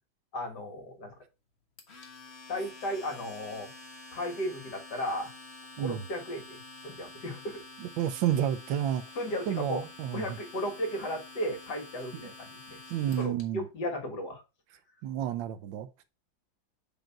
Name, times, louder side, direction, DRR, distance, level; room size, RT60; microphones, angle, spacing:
voice 1, 0.3-1.2 2.5-3.7 4.1-5.3 5.8-7.6 9.2-9.9 10.1-12.8 13.1-14.4, equal, 60° left, 2.2 m, -35 dB
Domestic sounds home sounds, 1.8-13.4, left 3 dB, 40° left, 1.4 m, -48 dB
voice 2, 7.8-9.0 9.5-10.2 12.2-12.3 12.9-13.6 15.0-15.9, right 10 dB, 80° right, 1.4 m, -30 dB
5.2 x 3.8 x 5.8 m
omnidirectional pair, 2.1 m